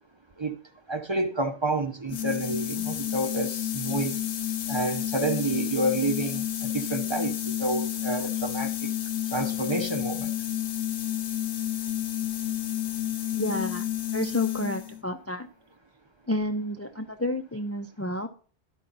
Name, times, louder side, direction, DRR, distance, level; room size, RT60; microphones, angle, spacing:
voice 1, 0.9-4.2 4.7-8.7 9.3-10.3, right 2 dB, 30° right, 0.7 m, -29 dB
sound 1, 2.1-15.0, left 11 dB, 90° left, 1.1 m, -30 dB
voice 2, 13.3-13.9 14.1-15.5 16.3-18.3, left 1 dB, 20° left, 0.4 m, -30 dB
11.5 x 5.6 x 3.9 m
omnidirectional pair, 1.1 m